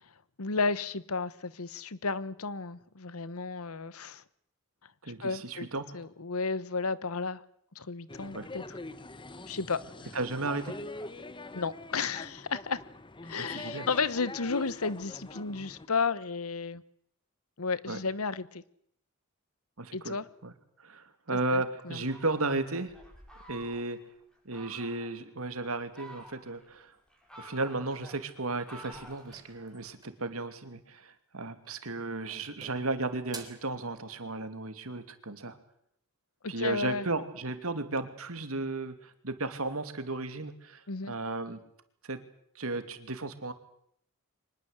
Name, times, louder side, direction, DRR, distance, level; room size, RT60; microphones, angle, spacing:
voice 1, 0.4-4.2 5.2-5.7 5.9-7.4 7.7-8.8 9.5-9.8 11.5-12.8 13.2-16.8 17.6-18.6 19.9-20.3 21.3-22.0 36.4-37.1 40.9-41.1, left 4 dB, 85° left, 1.2 m, -33 dB
voice 2, 5.0-6.0 8.3-8.5 10.1-11.1 13.4-13.9 17.9-18.0 19.8-20.5 20.8-22.9 23.5-24.0 24.4-26.9 27.4-35.6 36.5-41.6 42.0-42.2 42.5-43.5, right 2 dB, 75° right, 2.7 m, -34 dB
sound 1, 8.1-15.9, left 2 dB, 25° left, 1.1 m, -44 dB
Fowl, 22.0-24.0 24.5-25.1 25.7-26.6 27.1-29.9, right 1 dB, 5° left, 7.2 m, -51 dB
sound 2, 29.1-30.3 31.5-31.9 32.3-33.7, right 4 dB, 20° right, 3.5 m, -49 dB
24.5 x 20.5 x 8.2 m
head